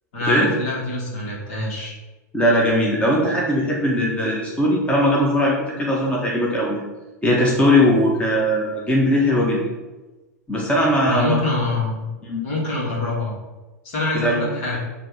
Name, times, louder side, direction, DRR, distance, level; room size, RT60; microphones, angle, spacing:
voice 1, 0.1-1.9 11.0-12.1 12.4-13.3 13.8-14.8, left 2 dB, 55° left, -3 dB, 2.6 m, -25 dB
voice 2, 2.3-6.8 7.2-9.6 10.5-11.3 12.3-12.4 14.1-14.8, equal, 15° left, -3 dB, 1.5 m, -19 dB
7.7 x 3.6 x 5.8 m, 1.1 s
figure-of-eight pair, 90°, 9 cm